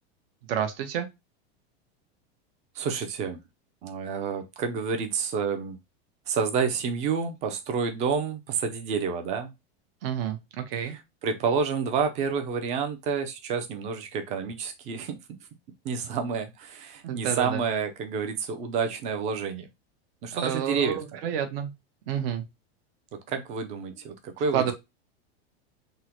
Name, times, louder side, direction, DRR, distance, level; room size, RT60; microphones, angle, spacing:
voice 1, 0.5-1.1 10.0-10.9 17.0-17.6 20.3-21.7 22.1-22.4 24.5-24.7, right 9 dB, 60° right, 0.8 m, -29 dB
voice 2, 2.8-3.4 3.8-5.8 6.3-9.5 10.8-15.2 15.8-19.7 20.2-21.0 23.3-24.7, right 5 dB, 20° right, 0.4 m, -29 dB
3.6 x 2.1 x 2.8 m
supercardioid pair, 155°, 32 cm